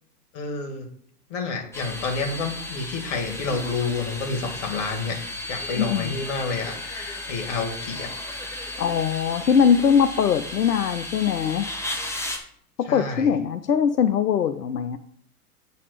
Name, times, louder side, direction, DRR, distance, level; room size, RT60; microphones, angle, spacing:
voice 1, 0.3-0.9 1.3-8.1 12.9-13.3, left 4 dB, 50° left, 4 dB, 2.4 m, -29 dB
sound 1, 1.7-12.4, left 1 dB, 5° left, 1.1 m, -35 dB
voice 2, 5.8-6.1 8.8-11.7 12.8-15.0, left 7 dB, 85° left, 8 dB, 0.7 m, -21 dB
8.4 x 4.2 x 6.7 m, 0.64 s
hypercardioid pair, 105°, 47 cm